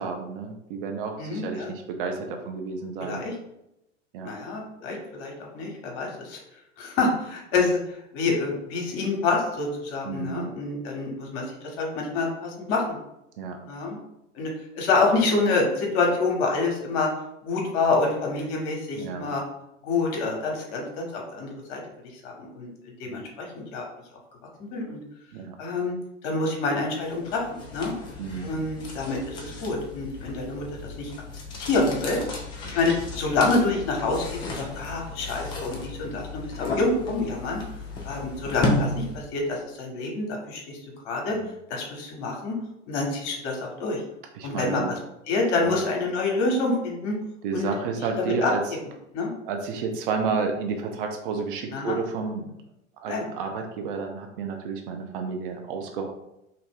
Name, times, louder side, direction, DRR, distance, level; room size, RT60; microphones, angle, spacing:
voice 1, 0.0-3.2 4.1-4.3 10.0-10.5 13.4-13.6 19.0-19.3 23.1-23.2 25.3-25.6 28.2-28.5 32.6-32.8 41.3-41.5 44.3-44.9 45.6-45.9 47.4-48.6 49.4-52.5 53.0-56.1, right 5 dB, 45° right, 4 dB, 0.5 m, -31 dB
voice 2, 1.2-1.7 3.0-3.3 4.2-6.4 6.8-7.8 8.1-13.0 13.7-14.0 14.4-14.5 14.8-17.1 17.4-19.4 19.8-21.8 22.2-23.9 24.7-25.0 25.6-25.9 26.2-27.4 27.7-27.9 28.4-31.1 31.6-32.2 32.6-37.6 38.1-40.8 41.0-41.4 41.7-42.6 42.9-44.0 44.4-44.9 45.3-47.1 47.5-47.7 48.2-48.5 49.1-49.3 51.7-52.0 53.1-53.2, left 3 dB, 40° left, 0 dB, 1.0 m, -27 dB
sound 1, 27.0-39.4, left 2 dB, 15° left, 0.3 m, -34 dB
2.8 x 2.5 x 3.6 m, 0.86 s
figure-of-eight pair, 85°, 37 cm